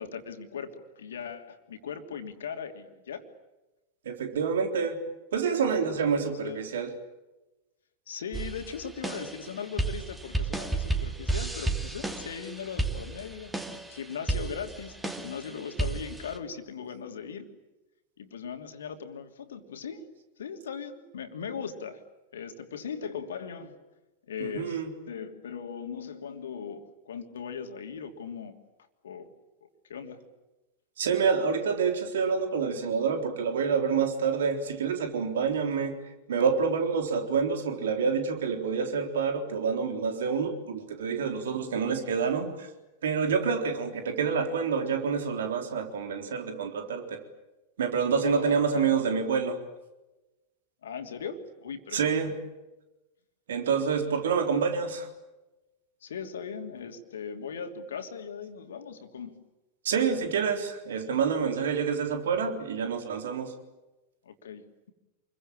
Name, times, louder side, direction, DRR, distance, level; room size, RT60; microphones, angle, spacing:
voice 1, 0.0-3.3 6.0-6.2 6.4-6.6 8.1-13.5 13.9-17.5 18.2-20.1 20.4-22.0 22.3-23.8 24.3-28.6 29.0-29.3 29.6-30.2 48.1-48.9 50.8-52.3 56.0-59.4 64.2-64.9, left 6 dB, 65° left, 6 dB, 3.0 m, -39 dB
voice 2, 4.1-5.0 5.3-6.9 24.4-24.9 31.0-36.0 36.3-42.7 43.0-47.2 47.8-49.6 51.9-52.3 53.5-55.1 59.8-63.5, right 6 dB, 60° right, 6 dB, 3.8 m, -27 dB
sound 1, 8.3-16.4, right 2 dB, 5° right, 2.5 m, -33 dB
28.0 x 23.0 x 8.7 m, 1.0 s
figure-of-eight pair, 90°, 0 cm